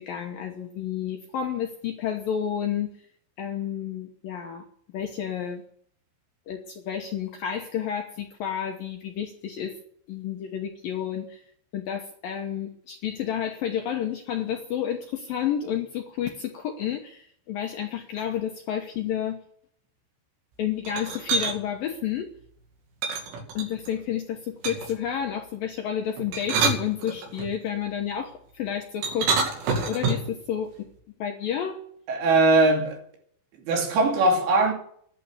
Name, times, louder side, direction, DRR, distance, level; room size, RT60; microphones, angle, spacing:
voice 1, 0.0-2.9 3.4-4.6 4.9-5.6 6.5-9.8 10.1-11.4 11.7-19.4 20.6-22.3 23.5-29.3 29.9-30.9 31.2-31.8, left 9 dB, 70° left, 2.3 m, -30 dB
sound 1, 20.8-21.6 23.0-23.9 24.6-25.0 26.2-27.5 29.0-30.4, right 4 dB, 90° right, 4.8 m, -27 dB
voice 2, 32.1-33.0 33.7-34.7, right 2 dB, 75° right, 5.0 m, -20 dB
12.0 x 11.5 x 8.2 m
omnidirectional pair, 5.3 m